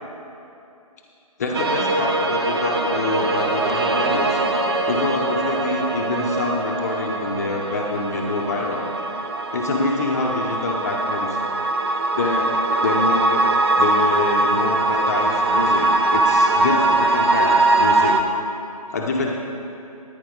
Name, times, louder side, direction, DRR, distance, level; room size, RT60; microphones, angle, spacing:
voice 1, 1.4-4.4 4.9-8.9 9.5-11.4 12.2-13.4 13.8-18.1 18.9-19.3, left 3 dB, 25° left, 0 dB, 0.7 m, -26 dB
sound 1, 1.5-18.2, right 2 dB, 40° right, 0.7 m, -21 dB
14.5 x 9.7 x 4.0 m, 2.7 s
figure-of-eight pair, 145°, 19 cm